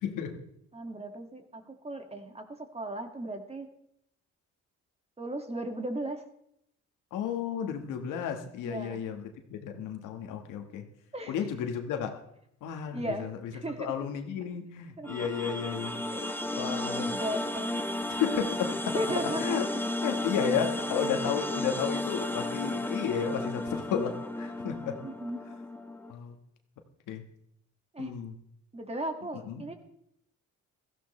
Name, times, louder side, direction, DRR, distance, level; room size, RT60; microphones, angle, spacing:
voice 1, 0.0-0.4 7.1-10.8 11.3-12.2 12.6-16.0 16.6-17.1 18.2-19.0 19.4-19.7 20.0-24.9 26.1-26.4 27.1-27.2 28.0-28.3 29.4-29.6, left 8 dB, 90° left, 6 dB, 1.5 m, -33 dB
voice 2, 0.7-3.7 5.2-6.2 8.6-9.0 11.1-11.3 12.9-13.3 13.6-13.9 15.0-15.2 16.1-16.4 16.7-17.8 18.9-19.8 25.0-25.4 27.9-28.1 28.7-29.7, right 1 dB, 20° right, 5 dB, 1.9 m, -36 dB
sound 1, 15.0-26.1, left 1 dB, 5° left, 1.0 m, -33 dB
15.5 x 14.5 x 3.2 m, 0.74 s
cardioid pair, 90°, 30 cm